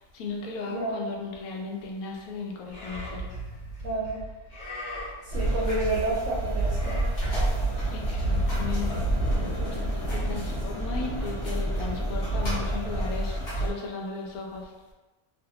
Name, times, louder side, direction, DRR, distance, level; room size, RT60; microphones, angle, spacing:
voice 1, 0.0-3.3 7.9-9.0 9.7-9.8 10.1-14.7, left 4 dB, 75° left, -1 dB, 1.0 m, -36 dB
voice 2, 0.7-1.0 3.8-4.2 5.2-7.1 9.6-9.8 10.2-10.5, right 2 dB, 65° right, -6 dB, 0.8 m, -30 dB
Livestock farm animals working animals, 2.7-10.6, right 1 dB, 30° left, 1.3 m, -34 dB
sound 1, 5.3-13.7, right 1 dB, 50° left, 0.9 m, -29 dB
sound 2, 7.4-12.8, left 1 dB, ahead, 0.8 m, -40 dB
2.7 x 2.2 x 2.7 m, 1.2 s
omnidirectional pair, 1.6 m